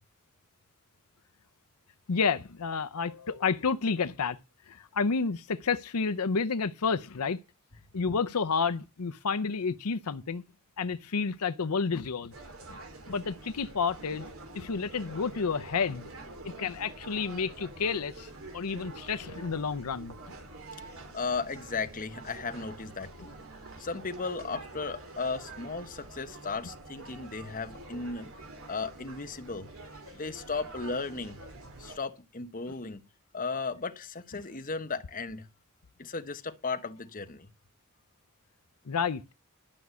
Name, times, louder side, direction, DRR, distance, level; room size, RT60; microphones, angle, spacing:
voice 1, 2.1-4.4 4.7-7.4 7.9-10.4 10.8-12.3 12.7-12.8 13.1-14.3 14.5-16.1 16.6-20.1 38.9-39.2, left 5 dB, 85° left, 0.7 m, -30 dB
sound 1, 12.3-32.0, right 2 dB, 65° right, 3.2 m, -46 dB
voice 2, 21.1-23.3 23.8-28.3 28.7-29.7 30.1-31.4 31.8-33.0 33.3-35.5 36.0-37.5, left 4 dB, 40° left, 1.2 m, -35 dB
12.0 x 6.2 x 8.1 m
head